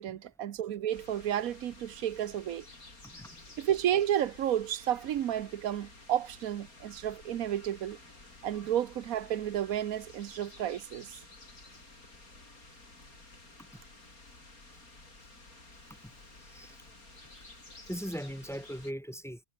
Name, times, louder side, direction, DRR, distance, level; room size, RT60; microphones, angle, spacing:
voice 1, 0.0-2.6 3.6-8.0 8.4-11.1, right 11 dB, 75° right, 1.3 m, -31 dB
sound 1, 0.9-18.9, left 2 dB, 75° left, 5.9 m, -53 dB
voice 2, 3.0-3.5 13.7-13.8 14.7-14.8 15.9-16.1 16.4-16.8 17.9-19.4, equal, ahead, 2.3 m, -40 dB
omnidirectional pair, 1.5 m